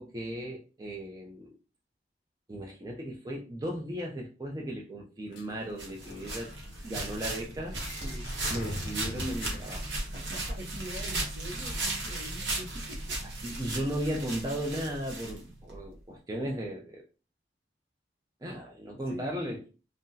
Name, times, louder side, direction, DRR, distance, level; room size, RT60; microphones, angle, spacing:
voice 1, 0.0-1.6 2.5-6.5 6.8-7.8 8.5-9.9 13.4-17.0 18.4-19.6, right 1 dB, 20° right, 0.4 m, -36 dB
sound 1, 5.3-10.6, left 2 dB, 85° left, 0.4 m, -45 dB
sound 2, 5.8-15.8, right 2 dB, 85° right, 1.0 m, -36 dB
voice 2, 10.1-13.2 19.1-19.3, right 1 dB, 50° right, 0.7 m, -44 dB
3.7 x 2.1 x 2.7 m
head